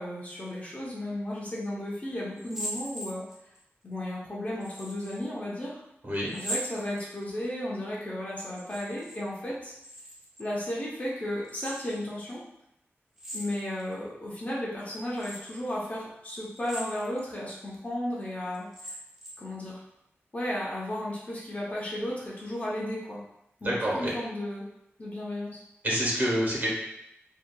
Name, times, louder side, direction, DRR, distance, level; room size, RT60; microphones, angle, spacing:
voice 1, 0.0-3.2 3.8-5.8 6.3-9.7 10.4-12.4 13.3-18.9 19.4-19.8 20.3-23.2 23.6-24.7 25.0-25.6, left 1 dB, 35° left, -6 dB, 0.7 m, -34 dB
sound 1, 2.4-3.6 4.6-5.2 6.3-7.5 8.5-9.2 9.5-10.5 11.4-12.0 13.2-13.9 14.5-14.6 15.2-15.6 16.5-17.3 17.7-17.8 18.5-19.5, equal, 10° right, 0.6 m, -40 dB
voice 2, 23.6-24.1 25.8-26.7, equal, 45° right, -6 dB, 1.2 m, -27 dB
2.7 x 2.4 x 2.2 m, 0.81 s
wide cardioid pair, 95°, 5 cm